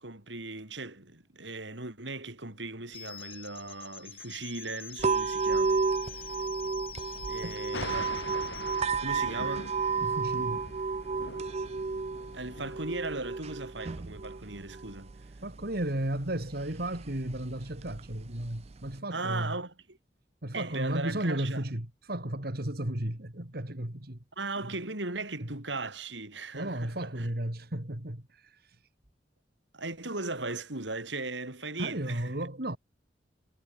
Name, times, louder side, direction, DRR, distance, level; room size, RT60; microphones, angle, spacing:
voice 1, 0.0-6.3 7.3-8.2 9.0-9.7 12.3-15.2 19.1-20.0 20.5-21.6 24.4-27.3 29.7-32.5, right 3 dB, 85° right, 5.8 m, -38 dB
sound 1, 2.9-8.9, left 8 dB, 30° left, 6.2 m, -45 dB
sound 2, 5.0-19.0, right 4 dB, 35° right, 0.5 m, -33 dB
Thunder, 7.7-12.8, left 2 dB, 70° left, 4.5 m, -43 dB
voice 2, 10.0-10.6 15.4-19.6 20.4-24.2 26.5-28.8 31.8-32.8, right 1 dB, 60° right, 3.3 m, -34 dB
head